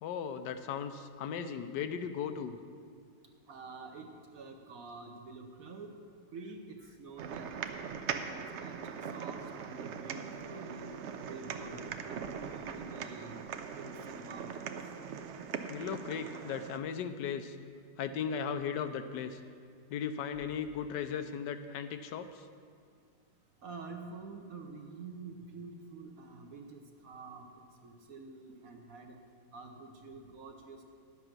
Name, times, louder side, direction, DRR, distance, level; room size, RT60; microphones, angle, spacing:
voice 1, 0.0-2.6 15.7-17.6 18.0-19.4 19.9-22.5, left 7 dB, 80° left, 9 dB, 1.2 m, -37 dB
voice 2, 3.5-6.0 6.3-7.9 8.3-11.0 11.2-13.5 13.7-14.8 18.1-18.2 23.6-27.5 27.8-29.2 29.5-30.8, right 3 dB, 55° right, 3 dB, 1.3 m, -48 dB
sound 1, 7.2-16.8, right 7 dB, 80° right, 0.6 m, -41 dB
11.0 x 7.8 x 6.0 m, 2.1 s
omnidirectional pair, 1.9 m